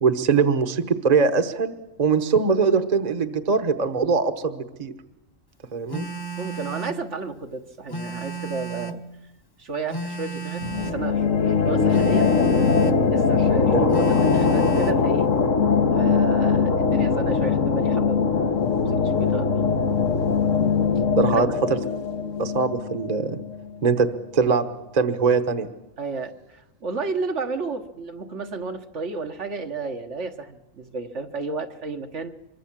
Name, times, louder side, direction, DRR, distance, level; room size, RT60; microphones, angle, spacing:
voice 1, 0.0-1.7 2.0-4.9 5.7-6.0 13.7-13.8 21.2-21.5 22.4-23.4 23.8-24.1 24.3-24.6 24.9-25.7, right 5 dB, 35° right, 9 dB, 1.2 m, -21 dB
Telephone, 5.9-7.0 7.9-9.1 9.9-11.1 11.9-13.0 13.9-15.0, right 4 dB, 20° left, 1.0 m, -33 dB
voice 2, 6.4-9.0 9.6-12.3 13.1-15.3 15.9-19.6 21.2-21.5 26.0-32.3, right 4 dB, 65° right, 5 dB, 1.7 m, -32 dB
sound 1, 10.6-24.0, left 5 dB, 75° left, 1.6 m, -21 dB
25.0 x 23.5 x 7.5 m, 0.94 s
omnidirectional pair, 1.3 m